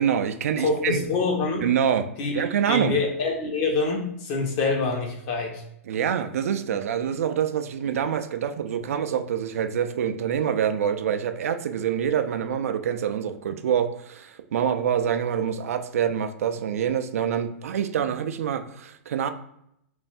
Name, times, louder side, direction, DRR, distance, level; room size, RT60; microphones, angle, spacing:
voice 1, 0.0-1.0 1.6-3.0 5.9-19.3, right 8 dB, 75° right, 9 dB, 0.3 m, -26 dB
voice 2, 0.6-1.6 2.2-5.6, left 3 dB, 45° left, 1 dB, 0.9 m, -26 dB
2.5 x 2.3 x 3.4 m, 0.76 s
hypercardioid pair, 125°, 8 cm